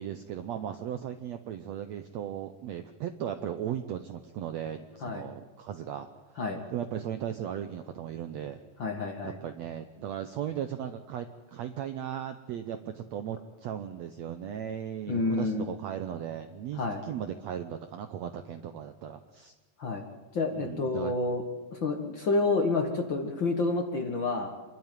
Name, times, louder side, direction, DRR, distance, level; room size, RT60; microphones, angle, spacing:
voice 1, 0.0-6.1 6.7-8.6 9.2-19.5 20.5-21.1, right 9 dB, 75° right, 8 dB, 1.6 m, -37 dB
voice 2, 8.8-9.4 15.1-15.7 16.7-17.0 19.8-20.0 20.3-21.4 21.7-24.5, left 3 dB, 45° left, 3 dB, 1.7 m, -29 dB
26.5 x 12.5 x 9.2 m, 1.3 s
omnidirectional pair, 4.0 m